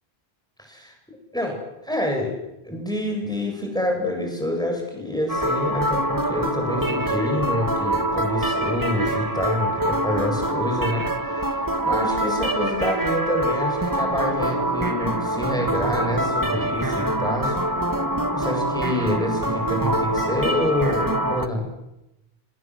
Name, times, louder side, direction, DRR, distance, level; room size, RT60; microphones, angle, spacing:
voice 1, 0.6-2.4 2.7-17.6 18.3-21.7, left 1 dB, 5° left, 2 dB, 7.9 m, -27 dB
sound 1, 5.3-21.5, right 1 dB, 20° right, 1.3 m, -25 dB
27.0 x 24.5 x 8.1 m, 0.93 s
omnidirectional pair, 1.0 m